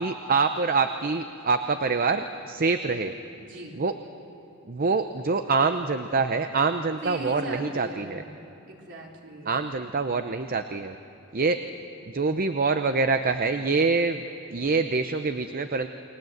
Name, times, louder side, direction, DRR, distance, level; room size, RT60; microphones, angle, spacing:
voice 1, 0.0-3.1 3.8-3.9 4.7-8.2 9.5-11.0 11.3-11.6 12.1-14.2 14.5-15.9, right 4 dB, 45° right, 8 dB, 0.7 m, -25 dB
voice 2, 3.4-3.8 6.9-8.4 8.7-9.7, right 1 dB, 60° right, -1 dB, 3.8 m, -38 dB
29.5 x 21.5 x 8.0 m, 2.8 s
head